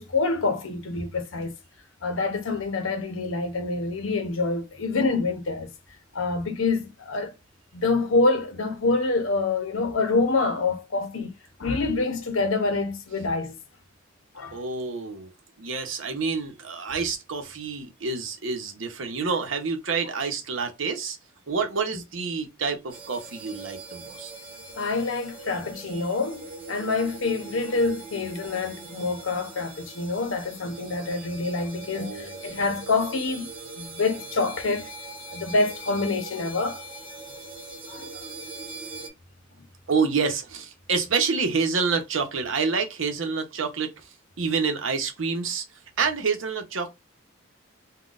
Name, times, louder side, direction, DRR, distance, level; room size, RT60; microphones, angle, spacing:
voice 1, 0.0-1.5 2.0-5.7 6.1-7.3 7.7-11.3 11.6-13.6 14.3-14.6 24.8-33.5 33.8-34.9 35.3-36.8 37.9-38.3, left 3 dB, 85° left, 0.7 m, -26 dB
voice 2, 14.5-15.3 15.6-21.2 21.5-24.3 31.9-32.4 39.9-43.9 44.4-45.6 46.0-46.9, right 5 dB, 75° right, 0.8 m, -28 dB
sound 1, 22.9-39.1, right 2 dB, 25° right, 0.9 m, -41 dB
3.8 x 2.2 x 2.4 m
head